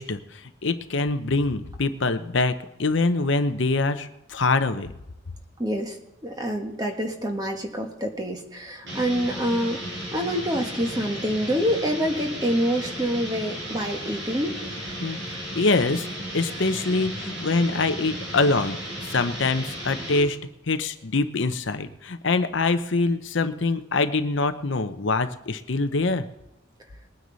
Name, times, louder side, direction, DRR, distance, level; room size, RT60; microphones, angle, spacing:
voice 1, 0.0-2.5 2.8-4.9 15.0-15.2 15.5-16.1 16.3-20.4 20.7-26.2, left 3 dB, 60° left, 9 dB, 0.7 m, -24 dB
voice 2, 5.6-6.0 6.2-14.6, equal, 20° right, 3 dB, 1.5 m, -26 dB
sound 1, 8.8-20.3, equal, 60° right, 5.0 m, -35 dB
21.0 x 9.5 x 4.1 m, 0.90 s
head